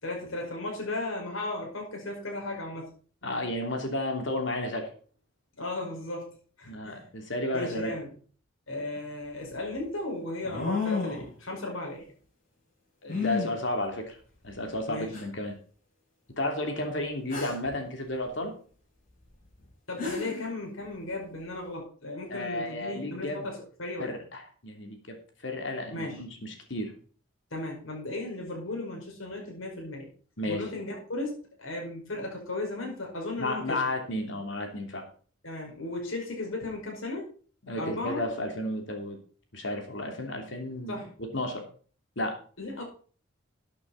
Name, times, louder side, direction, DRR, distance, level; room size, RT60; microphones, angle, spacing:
voice 1, 0.0-2.9 5.6-7.1 7.5-8.1 8.7-12.1 14.9-15.2 19.9-24.1 25.9-26.2 27.5-30.1 30.5-33.8 35.4-37.3 37.8-38.2 40.9-41.1 42.6-42.8, left 2 dB, 85° left, -1 dB, 5.3 m, -35 dB
voice 2, 3.2-4.9 6.7-7.9 13.0-14.2 14.4-15.5 16.4-18.5 22.3-23.5 24.0-25.2 25.4-26.9 30.4-30.7 33.4-35.1 37.7-39.2 39.5-41.0 41.3-41.6 42.2-42.4, left 1 dB, 65° left, 4 dB, 3.1 m, -32 dB
sound 1, 9.0-9.1 10.4-11.3 13.1-13.5 14.5-14.6 15.1-15.2 17.3-17.7 19.6-19.7 20.0-20.5, left 4 dB, 40° left, 6.7 m, -31 dB
13.5 x 8.9 x 4.1 m, 0.41 s
head